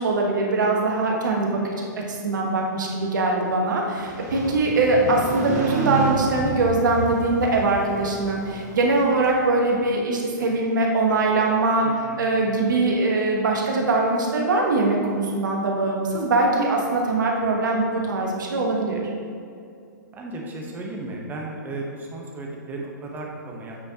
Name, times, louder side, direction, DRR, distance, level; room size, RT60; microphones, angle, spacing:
voice 1, 0.0-11.9 12.2-19.0, right 2 dB, 70° right, 0 dB, 1.2 m, -22 dB
Motorcycle, 3.8-9.7, right 4 dB, 50° right, 1.1 m, -31 dB
voice 2, 11.8-12.2 20.1-23.8, right 2 dB, 15° right, -1 dB, 1.0 m, -34 dB
8.3 x 4.4 x 2.9 m, 2.4 s
hypercardioid pair, 125°, 10 cm